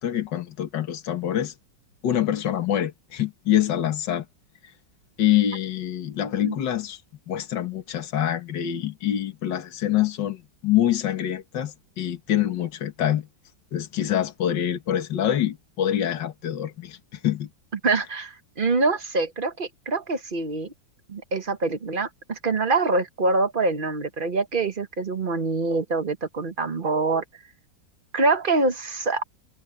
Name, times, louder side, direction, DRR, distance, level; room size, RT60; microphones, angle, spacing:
voice 1, 0.0-1.5 2.0-4.3 4.6-4.7 5.2-7.0 7.3-13.3 13.7-17.5, left 11 dB, 70° left, 2.1 m, -25 dB
voice 2, 17.8-20.7 21.1-27.2 28.1-29.2, right 3 dB, 35° right, 1.1 m, -25 dB
omnidirectional pair, 2.0 m